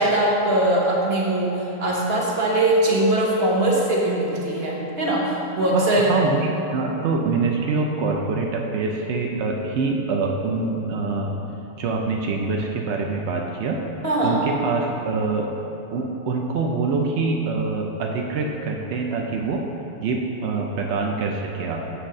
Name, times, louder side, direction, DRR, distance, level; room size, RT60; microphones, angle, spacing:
voice 1, 0.0-6.1 14.0-14.4, right 1 dB, 40° right, -4 dB, 1.4 m, -21 dB
voice 2, 5.7-11.4 11.8-13.9 14.2-15.5 15.9-19.6 20.0-21.9, right 4 dB, 75° right, 1 dB, 0.6 m, -25 dB
8.0 x 4.2 x 6.4 m, 3.0 s
omnidirectional pair, 1.8 m